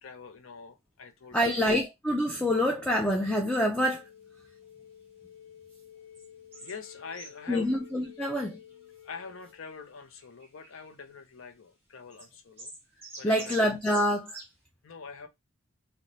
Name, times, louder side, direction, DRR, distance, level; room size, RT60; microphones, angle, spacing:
voice 1, 0.0-1.6 6.5-7.7 9.0-12.7 13.2-13.6 14.8-15.3, left 5 dB, 65° left, 0.5 m, -45 dB
voice 2, 1.3-4.0 7.5-8.6 13.2-14.4, equal, 5° left, 0.3 m, -26 dB
sound 1, 2.2-10.2, left 7 dB, 85° left, 1.0 m, -52 dB
sound 2, 6.1-6.3 6.5-6.8 7.1-7.5 7.9-8.7 9.1-9.2 10.2-10.9 12.1-12.3 12.6-14.5, right 2 dB, 10° right, 1.3 m, -46 dB
3.0 x 2.1 x 3.9 m
head